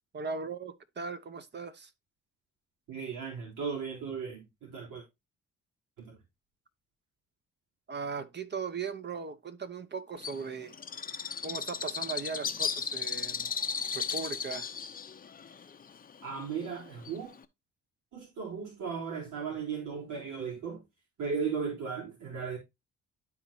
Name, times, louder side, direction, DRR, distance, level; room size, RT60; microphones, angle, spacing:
voice 1, 0.1-1.9 7.9-10.7 11.4-13.5 13.9-14.7, right 5 dB, 35° right, 1.0 m, -38 dB
voice 2, 2.9-5.0 6.0-6.2 16.2-17.3 18.1-20.8 21.2-22.6, right 6 dB, 75° right, 3.8 m, -36 dB
Bird, 10.2-17.4, left 6 dB, 30° left, 0.7 m, -36 dB
12.0 x 4.2 x 2.7 m
cardioid pair, 90°, 30 cm